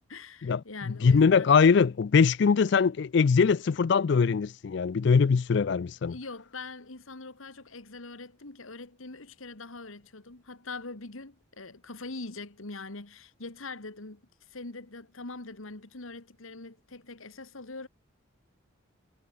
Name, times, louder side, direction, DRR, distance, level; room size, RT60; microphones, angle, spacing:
voice 1, 0.1-1.5 6.1-17.9, left 3 dB, 80° left, 2.0 m, -43 dB
voice 2, 0.9-6.2, left 5 dB, 55° left, 0.4 m, -22 dB
head